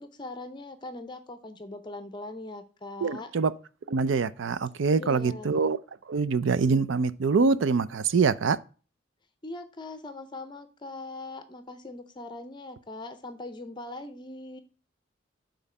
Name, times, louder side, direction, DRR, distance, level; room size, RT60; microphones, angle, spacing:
voice 1, 0.0-3.3 4.9-5.5 9.4-14.6, left 2 dB, 25° left, 0.6 m, -41 dB
voice 2, 3.0-3.5 3.9-5.8 6.1-8.6, right 4 dB, 90° right, 0.5 m, -24 dB
7.1 x 3.9 x 5.4 m
head